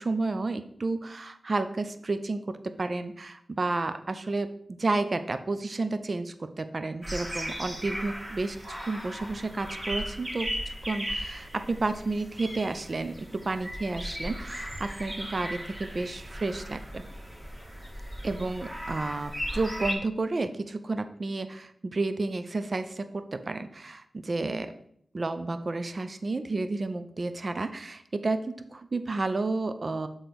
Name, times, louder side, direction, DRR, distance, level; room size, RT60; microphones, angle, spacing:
voice 1, 0.0-4.5 4.8-17.0 18.2-24.7 25.1-30.1, right 3 dB, 55° right, 10 dB, 0.6 m, -31 dB
sound 1, 7.0-19.9, equal, 30° right, 1.9 m, -37 dB
6.9 x 3.9 x 6.0 m, 0.68 s
cardioid pair, 50°, 0 cm